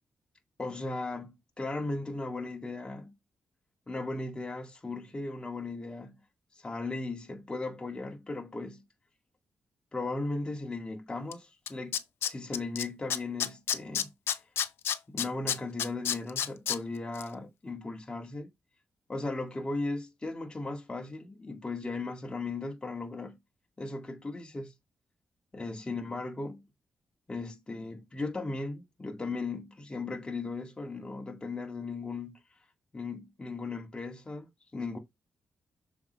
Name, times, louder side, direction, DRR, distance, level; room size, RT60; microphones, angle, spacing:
voice 1, 0.6-3.1 3.9-6.2 6.6-8.8 9.9-14.1 15.1-18.5 19.1-23.4 23.8-24.7 25.5-26.6 27.3-32.4 32.9-35.0, left 3 dB, 20° left, 2.0 m, -37 dB
Tools, 11.3-11.4 11.7-12.8 13.1-16.8 17.1-17.2, left 9 dB, 85° left, 0.7 m, -29 dB
6.9 x 4.8 x 3.1 m
cardioid pair, 100°, 4 cm